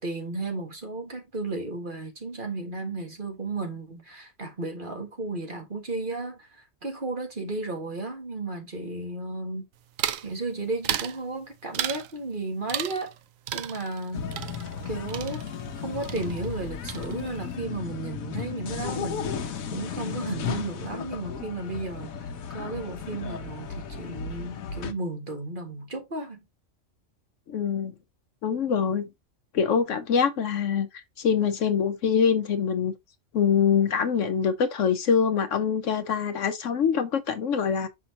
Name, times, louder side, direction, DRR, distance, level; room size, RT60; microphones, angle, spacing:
voice 1, 0.0-6.5 6.8-9.7 10.2-13.1 13.5-14.5 14.9-15.4 15.8-22.1 22.5-26.4, right 2 dB, 40° right, 1.8 m, -34 dB
sound 1, 10.0-10.3 10.8-11.2 11.7-12.1 12.7-13.2 13.5-15.8 16.0-16.6 16.9-17.4, right 11 dB, 75° right, 1.0 m, -33 dB
sound 2, 14.1-24.9, left 6 dB, 90° left, 1.3 m, -35 dB
voice 2, 27.5-27.9 28.4-29.1 29.5-30.9 31.2-32.9 33.3-37.9, left 7 dB, 65° left, 1.1 m, -24 dB
6.0 x 5.9 x 2.8 m
omnidirectional pair, 1.4 m